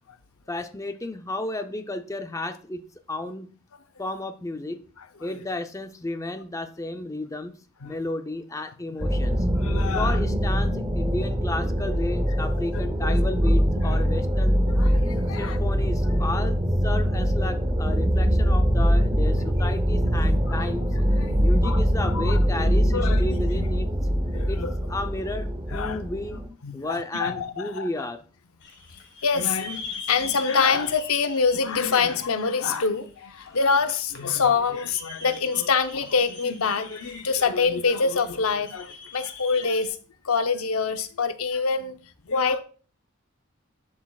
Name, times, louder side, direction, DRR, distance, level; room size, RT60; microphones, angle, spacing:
voice 1, 0.5-2.8 3.1-3.5 4.0-4.8 5.2-7.5 7.8-9.4 9.9-14.6 15.4-20.9 21.4-23.9 24.5-24.6 24.9-26.4 26.7-28.2, left 2 dB, 15° left, 0.5 m, -32 dB
sound 1, 9.0-26.5, equal, 20° right, 0.7 m, -23 dB
voice 2, 9.6-10.2 12.7-13.2 13.8-14.1 14.7-15.6 20.5-20.6 21.2-21.3 21.6-22.4 22.9-23.7 24.3-24.7 25.7-26.0 26.6-27.9 29.2-40.0 40.2-42.0 42.3-42.6, left 5 dB, 80° left, 0.7 m, -26 dB
sound 2, 28.6-39.9, left 4 dB, 55° left, 1.7 m, -43 dB
11.0 x 6.3 x 2.3 m
head